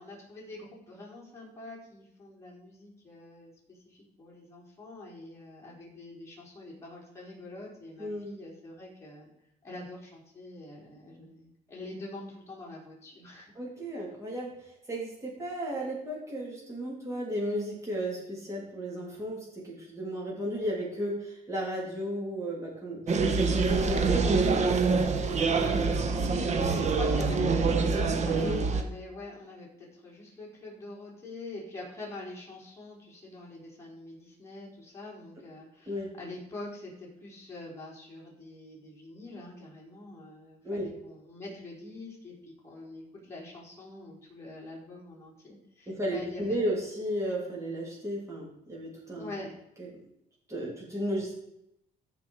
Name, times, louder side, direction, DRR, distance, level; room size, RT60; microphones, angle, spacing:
voice 1, 0.0-9.3 9.6-13.5 26.1-46.6 49.2-49.5, left 2 dB, 15° left, -4 dB, 4.7 m, -45 dB
voice 2, 8.0-8.3 13.5-14.5 14.9-24.5 25.1-26.4 28.4-28.6 35.9-36.1 40.6-40.9 45.9-49.3 49.8-49.9 50.5-51.4, equal, 15° right, -4 dB, 3.2 m, -34 dB
sound 1, 23.1-28.8, right 4 dB, 45° right, 1.2 m, -25 dB
14.5 x 5.3 x 4.9 m, 0.80 s
cardioid pair, 110°, 17 cm